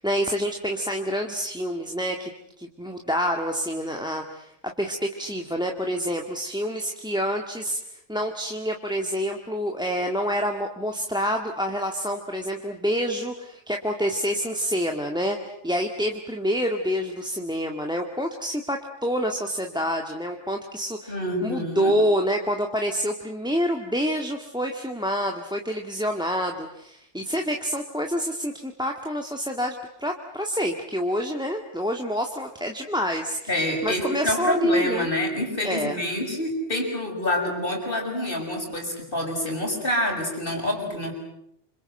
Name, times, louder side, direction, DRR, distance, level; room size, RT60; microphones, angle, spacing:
voice 1, 0.0-2.3 2.6-4.5 4.8-15.4 15.6-21.2 21.4-29.7 30.0-33.5 33.8-35.1 35.6-36.0, equal, 5° right, 3 dB, 1.8 m, -27 dB
voice 2, 21.1-22.0 33.5-41.1, left 1 dB, 45° left, 2 dB, 6.6 m, -27 dB
27.5 x 26.0 x 7.8 m, 0.76 s
omnidirectional pair, 1.2 m